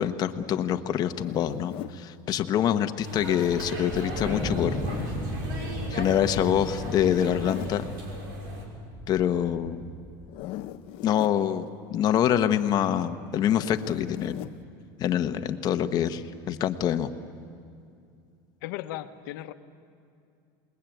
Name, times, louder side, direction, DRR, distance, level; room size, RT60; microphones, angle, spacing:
voice 1, 0.0-4.8 5.9-7.9 9.1-9.8 11.0-14.5 15.0-17.1, left 10 dB, 35° left, 8 dB, 1.2 m, -25 dB
Zipper (clothing), 1.1-2.0 3.9-5.1 6.7-7.8 10.2-11.4 13.4-14.6, left 15 dB, 55° left, 0.8 m, -40 dB
sound 1, 3.0-8.6, right 1 dB, 85° right, 6.1 m, -36 dB
Wind, 3.9-10.4, left 1 dB, 5° right, 4.7 m, -36 dB
voice 2, 18.6-19.5, left 14 dB, 75° left, 9 dB, 1.3 m, -36 dB
28.0 x 21.0 x 9.3 m, 2.4 s
supercardioid pair, 140°, 11 cm